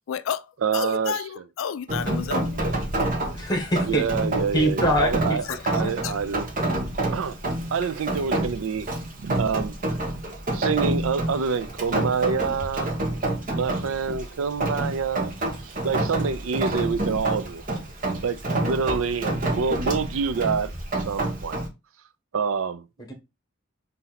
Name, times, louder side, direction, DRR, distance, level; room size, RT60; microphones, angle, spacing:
voice 1, 0.1-2.7 5.4-6.2, left 8 dB, 75° left, 0.3 m, -32 dB
voice 2, 0.6-1.1 3.9-5.4 5.7-6.5 7.1-7.4 7.7-8.9 9.2-9.7 10.5-13.0 13.5-15.3 15.6-17.6 18.2-20.7 21.1-21.6 22.3-22.8, right 5 dB, 85° right, 0.4 m, -27 dB
Rain, 1.9-21.7, right 2 dB, 40° right, 1.1 m, -28 dB
voice 3, 3.3-4.0 4.5-5.4 5.6-5.9 23.0-23.1, equal, 20° left, 1.3 m, -24 dB
4.0 x 2.7 x 4.0 m
head